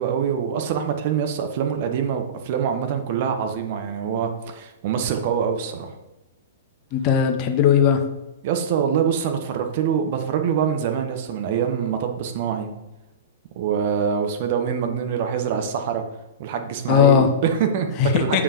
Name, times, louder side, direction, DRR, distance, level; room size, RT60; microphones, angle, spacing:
voice 1, 0.0-5.9 8.4-12.7 13.6-16.0 16.4-18.4, right 7 dB, 45° right, 5 dB, 1.1 m, -24 dB
voice 2, 6.9-8.0 16.9-17.3 18.0-18.4, left 8 dB, 35° left, 6 dB, 0.9 m, -18 dB
7.4 x 5.0 x 5.1 m, 1.0 s
figure-of-eight pair, 110°, 0 cm